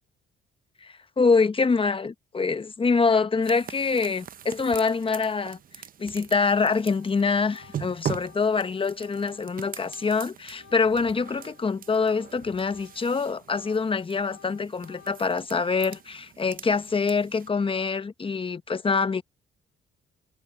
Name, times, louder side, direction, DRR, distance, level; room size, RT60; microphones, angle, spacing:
voice 1, 0.8-5.6 6.0-19.2, left 4 dB, 25° left, 0.8 m, -25 dB
sound 1, 3.4-17.5, right 9 dB, 45° right, 0.6 m, -42 dB
Organ, 6.2-6.5 6.8-13.1 13.4-16.3, left 8 dB, 65° left, 1.5 m, -54 dB
cardioid pair, 90°, 20 cm